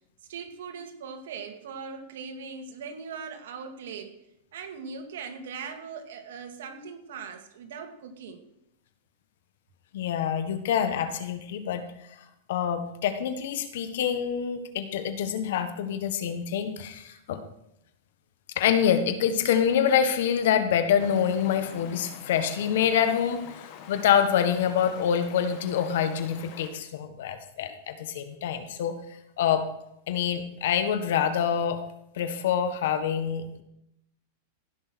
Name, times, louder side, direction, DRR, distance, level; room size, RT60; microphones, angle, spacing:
voice 1, 0.3-4.2 4.5-8.4, right 5 dB, 80° right, 5 dB, 2.1 m, -40 dB
voice 2, 9.9-11.8 12.5-17.4 18.5-23.4 23.9-28.9 29.4-29.6 30.1-31.8 32.2-33.6, left 8 dB, 70° left, 9 dB, 1.5 m, -26 dB
Stream, 21.0-26.7, left 8 dB, 45° left, 1.7 m, -46 dB
15.5 x 6.4 x 6.2 m, 0.81 s
supercardioid pair, 150°, 0 cm